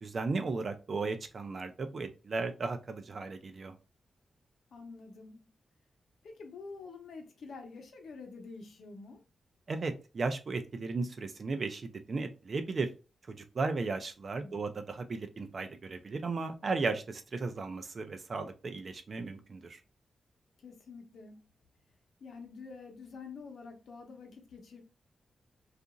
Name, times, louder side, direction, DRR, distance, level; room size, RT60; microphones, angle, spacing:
voice 1, 0.0-3.7 9.7-12.9 13.3-19.8, right 3 dB, 45° right, 0.4 m, -35 dB
voice 2, 4.7-5.5 6.2-9.2 14.4-14.8 20.6-21.5 22.2-24.8, left 4 dB, 75° left, 0.7 m, -48 dB
2.8 x 2.4 x 2.4 m
wide cardioid pair, 150°, 0 cm